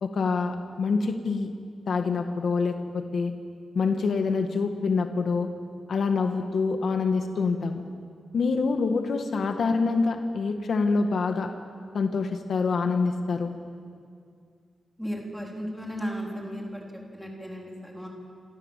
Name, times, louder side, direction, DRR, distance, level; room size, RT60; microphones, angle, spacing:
voice 1, 0.0-1.5 1.9-3.3 3.8-5.5 5.9-7.8 8.3-11.5 11.9-13.5, left 4 dB, 55° left, 5 dB, 1.8 m, -26 dB
voice 2, 15.0-18.1, equal, ahead, -1 dB, 4.2 m, -35 dB
28.0 x 26.5 x 7.5 m, 2.3 s
wide cardioid pair, 175°, 0 cm